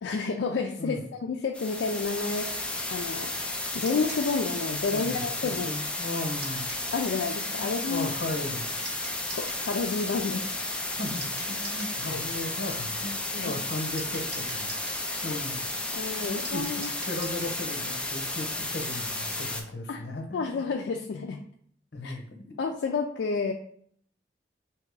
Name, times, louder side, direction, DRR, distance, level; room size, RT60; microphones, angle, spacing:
voice 1, 0.0-3.3 3.7-5.8 6.9-8.1 9.3-10.6 12.1-12.2 13.3-13.6 15.3-15.4 15.9-16.9 19.9-20.0 20.3-21.4 22.0-22.2 22.6-23.5, left 4 dB, 90° left, 3 dB, 0.4 m, -30 dB
sound 1, 1.5-19.6, left 2 dB, 5° left, 0.5 m, -33 dB
sound 2, 3.8-4.3 6.4-6.9 8.8-9.6 11.2-12.0 14.0-15.0 16.4-17.6, right 2 dB, 65° right, 1.5 m, -44 dB
voice 2, 4.9-6.6 7.6-8.7 10.9-15.7 16.2-20.6 21.9-22.6, left 2 dB, 65° left, 3 dB, 0.9 m, -36 dB
3.4 x 2.9 x 4.7 m, 0.64 s
head